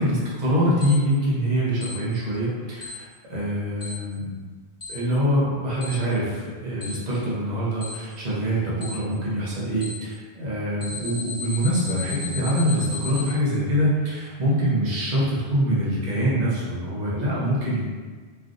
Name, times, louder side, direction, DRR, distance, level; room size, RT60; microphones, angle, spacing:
voice 1, 0.0-4.4 4.9-17.8, equal, 45° right, -7 dB, 0.8 m, -24 dB
Alarm, 0.8-0.9 1.8-1.9 2.8-2.9 3.8-3.9 4.8-4.9 5.8-5.9 6.8-6.9 7.8-7.9 8.8-8.9 9.8-9.9 10.8-13.2, left 5 dB, 35° left, 1.2 m, -34 dB
3.3 x 2.4 x 2.5 m, 1.5 s
omnidirectional pair, 1.1 m